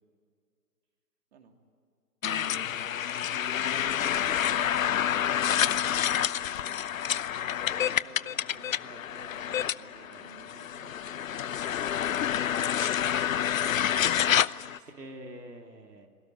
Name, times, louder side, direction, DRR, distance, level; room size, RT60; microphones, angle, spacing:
sound 1, 2.2-14.8, left 10 dB, 60° left, 0.6 m, -28 dB
voice 1, 2.2-2.9 4.3-4.6 14.9-16.1, right 1 dB, 90° right, 3 dB, 2.6 m, -46 dB
voice 2, 5.9-6.6 7.8-11.6 14.6-15.1, right 5 dB, 45° right, 4 dB, 2.9 m, -54 dB
21.0 x 17.5 x 9.8 m, 2.3 s
figure-of-eight pair, 135°, 47 cm